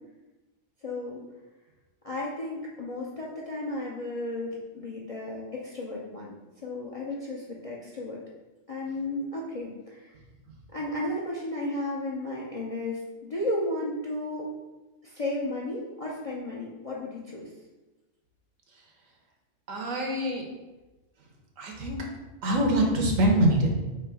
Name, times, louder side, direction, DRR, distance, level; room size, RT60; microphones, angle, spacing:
voice 1, 0.8-1.2 2.0-6.3 6.6-8.2 8.7-10.1 10.7-14.5 15.0-17.5, left 1 dB, 45° left, -3 dB, 0.4 m, -34 dB
voice 2, 19.7-20.4 21.6-22.0 22.4-23.7, right 1 dB, 80° right, 1 dB, 1.3 m, -24 dB
3.6 x 3.0 x 4.7 m, 1.1 s
omnidirectional pair, 1.4 m